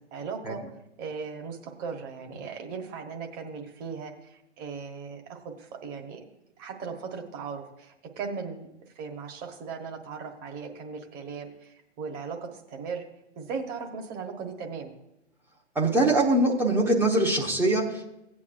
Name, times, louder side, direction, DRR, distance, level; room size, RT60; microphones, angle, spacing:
voice 1, 0.1-0.6 1.0-4.1 4.6-6.2 6.6-8.7 9.0-13.0 13.4-14.9, right 5 dB, 25° right, 3 dB, 1.3 m, -37 dB
voice 2, 15.7-18.1, right 2 dB, 5° right, -2 dB, 0.9 m, -23 dB
17.0 x 8.5 x 2.6 m, 0.86 s
figure-of-eight pair, 115°, 36 cm